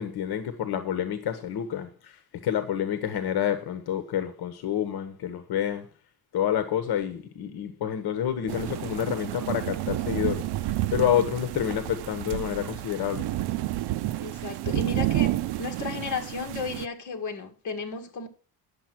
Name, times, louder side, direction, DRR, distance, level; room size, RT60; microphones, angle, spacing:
voice 1, 0.0-5.8 6.3-10.4 10.9-13.3, left 9 dB, 70° left, 1.3 m, -28 dB
sound 1, 8.5-16.9, right 15 dB, 80° right, 0.6 m, -30 dB
voice 2, 14.2-18.3, left 4 dB, 45° left, 1.9 m, -34 dB
10.0 x 7.2 x 6.0 m
cardioid pair, 160°, 39 cm